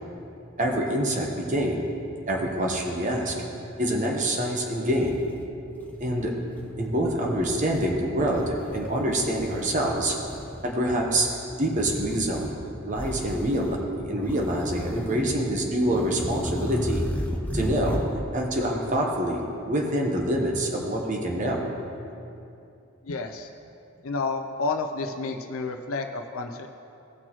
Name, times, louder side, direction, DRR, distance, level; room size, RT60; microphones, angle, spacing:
voice 1, 0.6-1.8 2.3-3.5 3.8-5.2 6.0-10.1 10.6-12.6 12.8-17.0 17.5-18.0 18.3-21.8, right 1 dB, 35° right, 0 dB, 1.0 m, -26 dB
sound 1, 4.5-4.6 5.0-6.1 6.5-6.9 7.4-8.0 8.3-9.9 10.2-10.7 11.8-12.6 12.9-13.9 14.2-15.4 15.8-18.2, equal, 10° left, 0.6 m, -34 dB
voice 2, 23.0-23.5 24.0-26.7, left 3 dB, 90° left, 5 dB, 0.5 m, -30 dB
17.5 x 6.1 x 3.0 m, 2.7 s
head